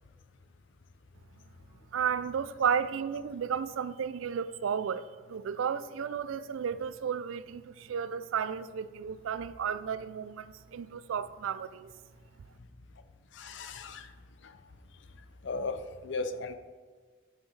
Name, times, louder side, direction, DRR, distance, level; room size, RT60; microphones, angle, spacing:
voice 1, 1.9-11.9, right 7 dB, 75° right, 0.4 m, -33 dB
voice 2, 13.3-14.1 14.4-14.5 15.4-16.5, left 3 dB, 60° left, 0.5 m, -36 dB
9.2 x 7.6 x 3.3 m
head